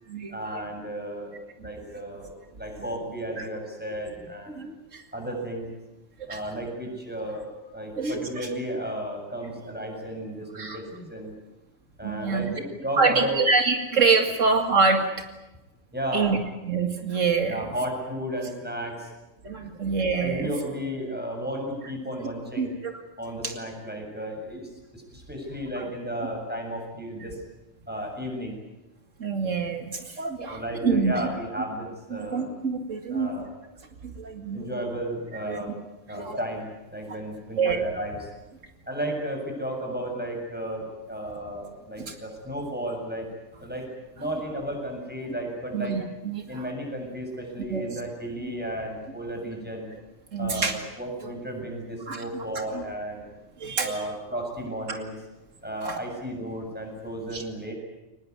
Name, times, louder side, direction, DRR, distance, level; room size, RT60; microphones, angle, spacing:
voice 1, 0.3-2.3 2.6-4.6 5.1-5.7 6.3-11.3 12.0-13.4 15.9-16.4 17.4-19.1 20.2-22.7 23.2-27.4 27.9-28.6 30.5-32.5 33.1-33.5 34.5-35.7 36.1-38.3 38.9-43.3 43.6-43.9 44.1-46.0 46.5-49.9 50.4-50.7 51.0-53.2 53.8-55.1 55.6-57.7, equal, 5° right, 1 dB, 7.3 m, -33 dB
voice 2, 4.5-5.0 6.2-6.4 8.0-8.5 10.5-10.8 12.0-12.5 13.0-15.3 16.1-16.4 16.6-17.7 19.4-20.5 22.6-22.9 23.4-23.5 25.8-25.9 29.2-31.3 32.1-33.3 34.0-34.7 35.5-35.6 36.1-36.4 37.6-37.8 42.1-42.2 45.7-46.6 47.7-47.8 48.4-48.5 50.3-50.7 52.1-52.4 52.7-52.8 53.6-54.1 55.8-56.0 57.3-57.4, right 4 dB, 85° right, 5 dB, 2.5 m, -26 dB
24.0 x 20.0 x 9.6 m, 1.0 s
omnidirectional pair, 1.3 m